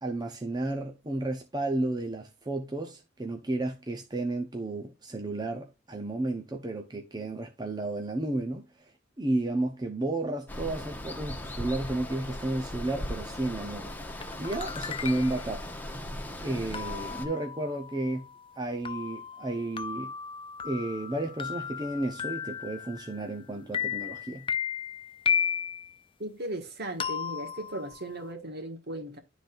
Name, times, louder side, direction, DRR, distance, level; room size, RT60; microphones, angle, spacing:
voice 1, 0.0-8.9 9.2-13.9 14.4-15.7 16.0-16.1 16.4-18.3 18.6-20.1 20.6-24.5, right 2 dB, 20° right, 0.8 m, -32 dB
Water, 10.5-17.3, left 1 dB, 10° left, 0.9 m, -38 dB
sound 1, 14.2-15.5 16.7-23.4 23.7-25.9 27.0-28.3, left 7 dB, 25° left, 0.4 m, -35 dB
voice 2, 26.2-29.2, right 1 dB, 60° right, 1.8 m, -37 dB
12.0 x 4.0 x 2.6 m
head